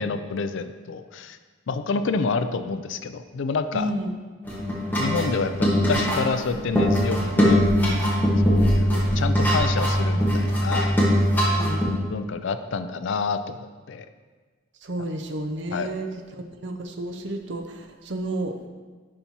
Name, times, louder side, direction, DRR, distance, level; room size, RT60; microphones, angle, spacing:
voice 1, 0.0-1.4 1.7-3.9 5.0-7.7 8.5-11.0 12.1-13.6 13.9-14.1 15.7-15.9, left 4 dB, 60° left, 10 dB, 0.4 m, -28 dB
voice 2, 3.7-4.1 11.4-11.8 14.8-18.7, right 1 dB, 55° right, 6 dB, 0.6 m, -31 dB
sound 1, 4.4-11.9, equal, 10° left, 1.2 m, -21 dB
10.5 x 5.4 x 2.9 m, 1.4 s
head